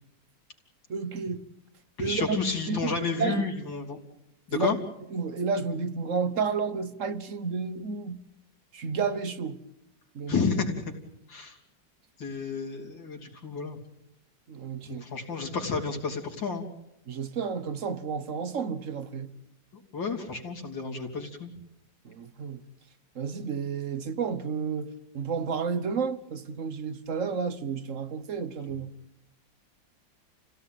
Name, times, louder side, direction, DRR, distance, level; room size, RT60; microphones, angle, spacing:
voice 1, 0.9-1.4 2.0-2.4 2.7-3.5 4.5-4.7 5.1-8.2 8.7-9.6 10.1-10.5 14.5-15.0 17.1-19.3 22.0-22.6 23.1-28.9, right 5 dB, 45° right, 1.5 m, -31 dB
voice 2, 2.0-4.0 4.5-4.8 10.3-10.8 11.3-11.6 12.2-13.8 14.8-16.7 19.9-21.5, left 4 dB, 80° left, 3.7 m, -31 dB
29.5 x 17.0 x 9.2 m
omnidirectional pair, 2.0 m